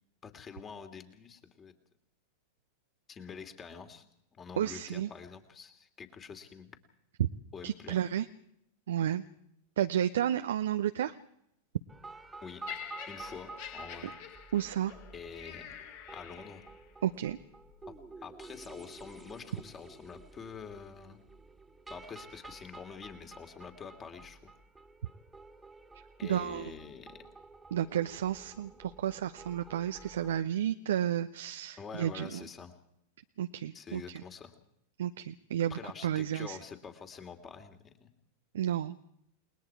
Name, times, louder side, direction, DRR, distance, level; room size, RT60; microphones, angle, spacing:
voice 1, 0.2-1.7 3.1-4.0 4.3-6.8 7.5-8.0 12.4-12.6 13.1-14.1 15.1-15.7 16.1-16.6 17.9-21.2 21.9-24.5 26.2-27.2 31.8-32.7 33.7-34.5 35.7-38.1, left 6 dB, 25° left, 7 dB, 3.0 m, -46 dB
voice 2, 4.6-5.1 7.2-7.3 7.6-8.3 8.9-9.2 9.8-11.1 14.5-14.9 17.0-17.4 26.2-26.7 27.7-32.4 33.4-34.2 35.0-36.6 38.5-39.0, right 10 dB, 60° right, 8 dB, 0.7 m, -32 dB
sound 1, 11.9-30.4, right 3 dB, 10° right, 2.2 m, -51 dB
Laughter, 12.7-16.9 17.7-17.9, left 8 dB, 50° left, 2.9 m, -46 dB
29.5 x 20.5 x 4.8 m, 0.76 s
figure-of-eight pair, 90°, 0 cm